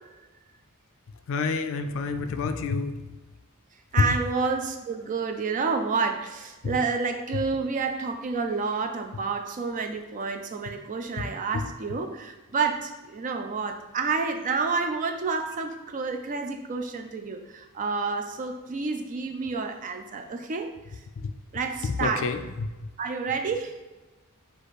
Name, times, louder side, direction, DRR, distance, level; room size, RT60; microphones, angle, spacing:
voice 1, 1.3-2.9 4.0-4.1 6.6-6.7 11.5-11.6 21.8-22.4, left 4 dB, 60° left, 8 dB, 0.3 m, -27 dB
voice 2, 3.9-21.0 21.5-22.3 23.0-23.7, right 4 dB, 35° right, 5 dB, 0.4 m, -29 dB
4.9 x 2.4 x 4.1 m, 1.2 s
head